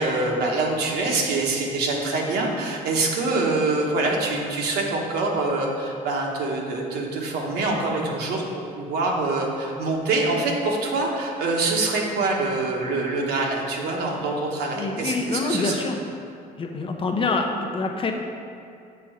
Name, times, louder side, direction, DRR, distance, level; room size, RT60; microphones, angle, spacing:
voice 1, 0.0-15.7, right 3 dB, 70° right, -1 dB, 1.2 m, -25 dB
voice 2, 14.7-16.3 16.6-18.1, left 3 dB, 30° left, 3 dB, 0.7 m, -26 dB
6.9 x 3.7 x 6.4 m, 2.4 s
cardioid pair, 110°, 17 cm